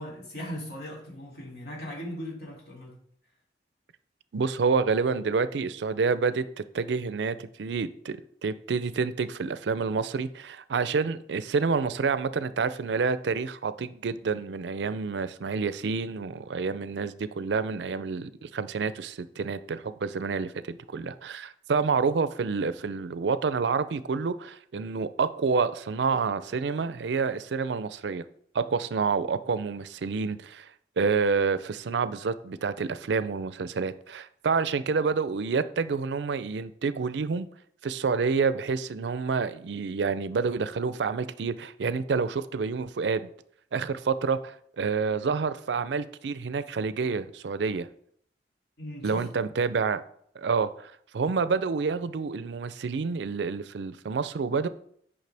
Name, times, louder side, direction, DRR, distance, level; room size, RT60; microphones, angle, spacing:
voice 1, 0.0-3.0 48.8-49.5, equal, 65° left, 2.9 m, -39 dB
voice 2, 4.3-28.2 28.5-30.7 31.0-37.5 37.8-43.3 43.7-47.9 49.0-50.0 50.4-54.7, right 5 dB, 85° right, 0.4 m, -28 dB
9.3 x 5.6 x 3.4 m
head